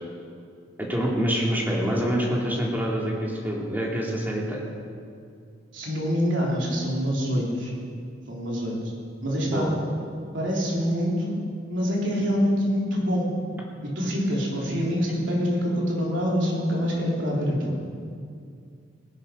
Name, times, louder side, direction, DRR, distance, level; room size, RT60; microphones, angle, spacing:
voice 1, 0.8-4.7 9.4-9.7, equal, 10° right, -3 dB, 2.3 m, -26 dB
voice 2, 5.7-7.7 8.3-8.8 9.2-9.7 10.3-11.4 11.7-13.3 14.0-17.7, equal, 70° right, -4 dB, 3.7 m, -25 dB
18.0 x 12.0 x 5.3 m, 2.3 s
head